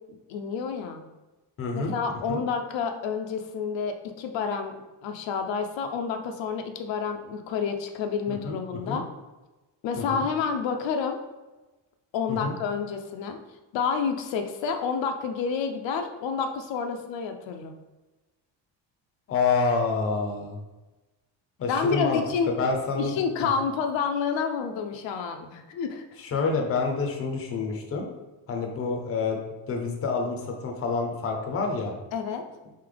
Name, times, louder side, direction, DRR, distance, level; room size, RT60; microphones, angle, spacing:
voice 1, 0.1-1.0 1.7-4.8 5.0-9.1 9.8-11.2 12.1-13.4 13.7-17.7 21.7-22.5 23.0-26.0 32.1-32.4, left 6 dB, 75° left, 5 dB, 0.6 m, -29 dB
voice 2, 1.6-1.9 2.3-2.4 8.3-8.5 8.9-9.0 10.1-10.3 12.3-12.5 19.3-20.6 21.6-22.2 22.5-23.1 26.2-28.1 28.5-31.9, left 4 dB, 30° left, 2 dB, 0.6 m, -27 dB
3.8 x 3.3 x 3.9 m, 1.1 s
cardioid pair, 165°, 44 cm